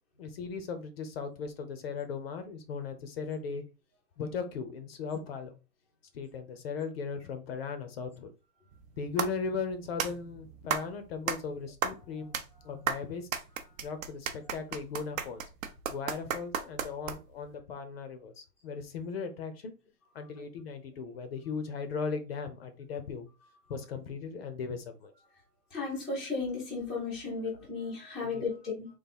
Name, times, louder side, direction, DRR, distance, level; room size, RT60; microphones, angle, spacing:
voice 1, 0.2-3.6 4.2-5.5 6.1-8.3 9.0-13.3 13.8-15.4 15.9-19.7 20.1-23.3 23.7-25.1 27.4-27.6 28.2-28.5, left 5 dB, 40° left, 0.6 m, -37 dB
sound 1, 8.7-17.5, right 7 dB, 50° right, 0.7 m, -36 dB
voice 2, 25.7-28.9, left 4 dB, ahead, 0.5 m, -34 dB
3.9 x 2.6 x 4.2 m
hypercardioid pair, 150°, 50 cm